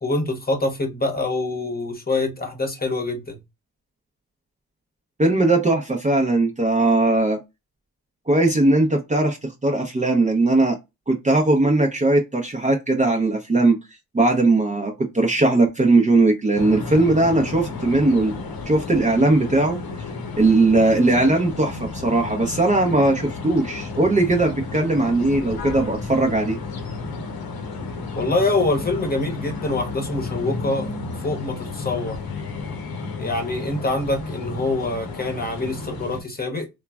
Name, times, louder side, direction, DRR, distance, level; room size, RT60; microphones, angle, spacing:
voice 1, 0.0-3.4 28.1-30.9 31.2-32.2 33.2-36.7, left 2 dB, 25° left, 0.9 m, -25 dB
voice 2, 5.2-7.4 8.3-10.8 11.1-13.8 14.1-18.3 18.7-19.8 20.4-26.6, right 2 dB, 20° right, 0.6 m, -19 dB
sound 1, 16.6-36.2, left 3 dB, 80° left, 0.8 m, -32 dB
3.0 x 2.2 x 2.2 m
cardioid pair, 75°, 36 cm